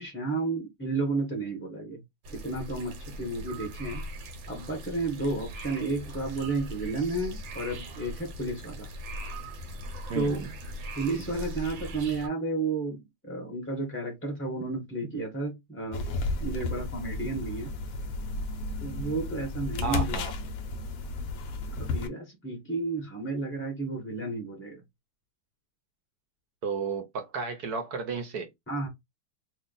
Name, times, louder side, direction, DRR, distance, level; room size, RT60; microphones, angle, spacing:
voice 1, 0.0-2.0 2.3-4.0 4.5-8.9 10.1-10.4 10.9-16.1 16.4-17.7 18.8-20.2 21.8-24.8 28.7-28.9, right 3 dB, 10° left, 0.6 m, -32 dB
sound 1, 2.2-12.3, right 1 dB, 90° right, 1.6 m, -40 dB
voice 2, 10.1-10.5 19.8-20.3 26.6-28.5, right 5 dB, 65° right, 1.1 m, -33 dB
sound 2, 15.9-22.1, left 3 dB, 70° left, 0.9 m, -33 dB
3.1 x 2.4 x 3.8 m
omnidirectional pair, 2.0 m